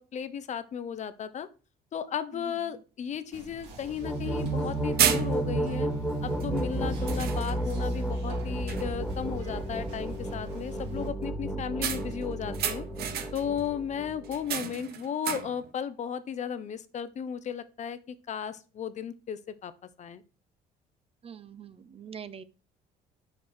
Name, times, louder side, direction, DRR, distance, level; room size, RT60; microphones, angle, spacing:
voice 1, 0.0-1.5 1.9-5.9 6.2-12.9 13.3-18.0 18.3-19.7 20.0-20.2, left 8 dB, 45° left, 13 dB, 0.7 m, -35 dB
sound 1, 3.1-3.2 3.6-3.7 4.5-4.7 5.0-5.7 6.4-6.6 7.1-7.9 8.3-8.4 8.7-9.1 11.8-13.6 14.2-15.7, right 9 dB, 65° right, 0.9 m, -31 dB
Whispering, 3.3-11.1, right 2 dB, 85° right, 2.8 m, -48 dB
sound 2, 3.8-14.5, right 1 dB, 5° left, 1.5 m, -32 dB
voice 2, 21.2-22.4, right 7 dB, 35° right, 14 dB, 0.5 m, -44 dB
5.9 x 4.8 x 4.3 m, 0.34 s
cardioid pair, 110°, 17 cm